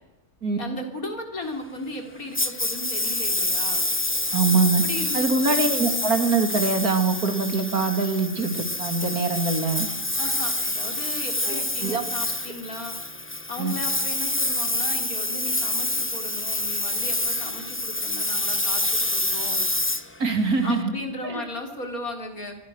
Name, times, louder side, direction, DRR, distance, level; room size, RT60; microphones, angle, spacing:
voice 1, 0.6-3.8 4.8-5.6 10.2-13.0 13.5-19.6 20.6-22.5, left 1 dB, 70° left, 4 dB, 4.6 m, -36 dB
Engine, 2.3-20.8, left 1 dB, 10° left, 1.0 m, -27 dB
voice 2, 4.3-4.8 5.1-9.9 11.5-12.0 13.6-13.7 20.2-20.9 21.2-21.5, right 4 dB, 75° right, 6 dB, 3.5 m, -23 dB
26.0 x 22.5 x 6.6 m, 0.95 s
omnidirectional pair, 1.6 m